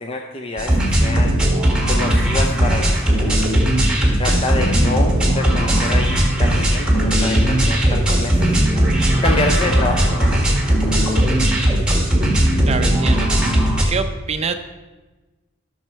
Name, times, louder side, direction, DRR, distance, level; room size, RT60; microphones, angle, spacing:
voice 1, 0.0-1.4 1.9-3.4 4.2-8.6 9.2-11.0, left 2 dB, 25° left, 2 dB, 0.6 m, -27 dB
sound 1, 0.6-13.8, right 1 dB, 5° right, 1.6 m, -17 dB
voice 2, 12.7-13.3 13.9-14.5, right 5 dB, 30° right, 8 dB, 0.5 m, -25 dB
13.5 x 6.3 x 4.5 m, 1.2 s
head